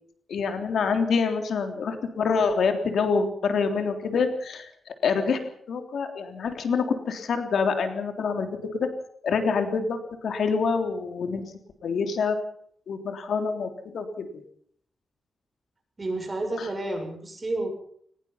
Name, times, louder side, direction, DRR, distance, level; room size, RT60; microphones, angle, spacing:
voice 1, 0.3-5.4 5.7-8.9 9.2-11.4 11.8-12.4 12.9-14.4 16.6-16.7, left 5 dB, 75° left, 6 dB, 3.3 m, -26 dB
voice 2, 16.0-17.7, right 2 dB, 25° right, 4 dB, 7.1 m, -30 dB
22.5 x 20.0 x 5.8 m, 0.63 s
wide cardioid pair, 125°, 0 cm